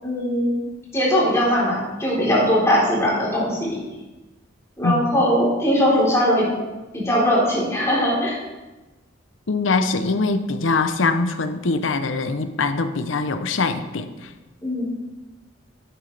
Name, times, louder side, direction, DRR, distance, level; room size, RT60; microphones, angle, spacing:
voice 1, 0.0-0.6 0.9-3.8 4.8-6.5 6.9-8.4 14.6-14.9, equal, 15° left, -7 dB, 3.8 m, -20 dB
voice 2, 4.8-5.2 9.5-14.3, left 3 dB, 85° left, 10 dB, 0.7 m, -23 dB
11.5 x 8.6 x 3.4 m, 1.1 s
head